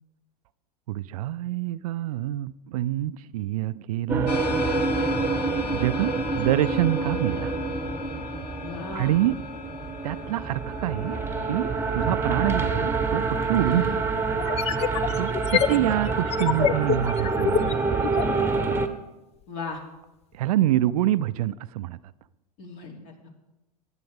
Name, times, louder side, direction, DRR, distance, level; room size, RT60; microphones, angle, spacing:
voice 1, 0.9-4.4 5.7-7.5 8.9-9.3 10.0-11.2 11.5-14.0 15.2-17.8 20.3-22.0, right 14 dB, 65° right, 16 dB, 0.4 m, -26 dB
sound 1, 4.1-18.9, right 4 dB, 10° right, 1.1 m, -27 dB
sound 2, 4.3-12.5, left 6 dB, 80° left, 0.8 m, -37 dB
voice 2, 8.6-9.1 13.6-14.0 15.7-15.9 19.5-19.8 22.6-23.3, left 4 dB, 55° left, 1 dB, 3.1 m, -37 dB
sound 3, 13.0-13.1 14.4-18.4, left 9 dB, 30° left, 0.6 m, -27 dB
21.5 x 9.1 x 3.6 m, 1.0 s
hypercardioid pair, 90°, 21 cm